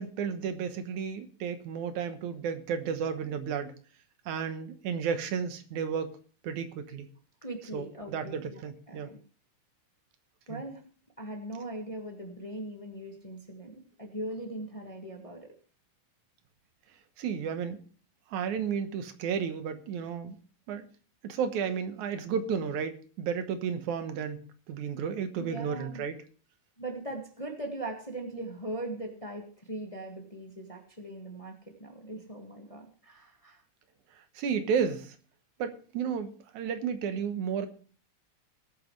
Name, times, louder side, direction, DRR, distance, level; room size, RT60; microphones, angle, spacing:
voice 1, 0.0-3.7 4.3-6.2 6.4-7.1 7.7-9.1 10.5-10.6 17.2-17.8 18.3-20.4 20.7-20.9 21.2-26.2 34.4-35.2 35.6-37.7, right 7 dB, 85° right, 9 dB, 2.6 m, -32 dB
voice 2, 7.4-8.6 8.9-9.2 10.5-10.8 11.2-15.5 25.4-26.0 26.8-33.6, right 1 dB, 15° left, 2 dB, 1.2 m, -40 dB
20.5 x 9.1 x 3.2 m, 0.40 s
omnidirectional pair, 3.3 m